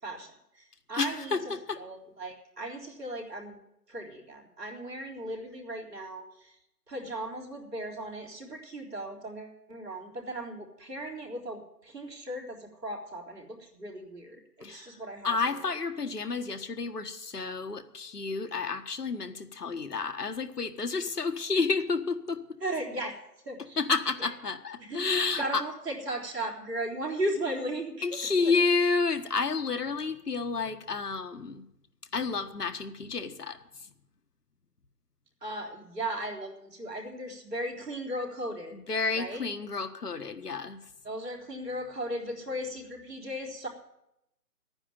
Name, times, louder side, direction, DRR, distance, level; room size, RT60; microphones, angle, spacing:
voice 1, 0.0-1.4 1.8-3.6 3.9-6.6 6.9-15.6 22.6-23.2 23.5-23.8 24.8-25.0 25.4-28.0 28.4-28.5 35.4-38.8 39.1-39.4 41.0-43.7, right 1 dB, 80° right, 0 dB, 4.1 m, -37 dB
voice 2, 0.9-1.8 14.6-14.9 15.2-22.6 23.8-25.6 28.0-31.6 32.1-33.9 38.7-40.8, left 4 dB, 75° left, 8 dB, 1.6 m, -30 dB
12.0 x 9.8 x 9.2 m, 0.81 s
figure-of-eight pair, 175°, 48 cm